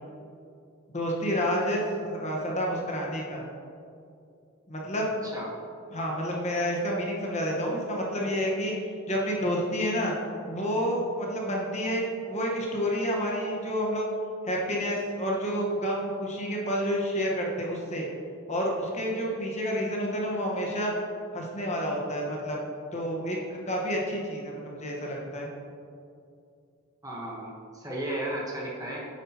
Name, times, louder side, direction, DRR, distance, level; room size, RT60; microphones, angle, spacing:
voice 1, 0.9-3.5 4.7-5.1 5.9-8.8 9.1-10.1 10.5-14.1 14.4-18.1 18.5-20.9 21.3-22.6 22.9-25.5, equal, 35° left, -2 dB, 1.2 m, -29 dB
voice 2, 27.0-29.1, right 1 dB, 15° right, -3 dB, 1.1 m, -34 dB
9.8 x 8.1 x 2.9 m, 2.5 s
head